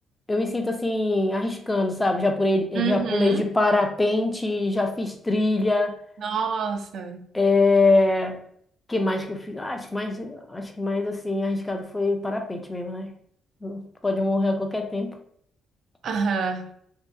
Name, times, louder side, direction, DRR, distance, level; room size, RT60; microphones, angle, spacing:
voice 1, 0.3-5.9 7.3-8.4 8.9-13.1 13.6-15.2, left 2 dB, 15° left, 4 dB, 0.5 m, -24 dB
voice 2, 2.7-3.5 6.2-7.3 16.0-16.7, right 5 dB, 60° right, 6 dB, 0.4 m, -27 dB
2.6 x 2.4 x 2.3 m, 0.65 s
cardioid pair, 90°, 0 cm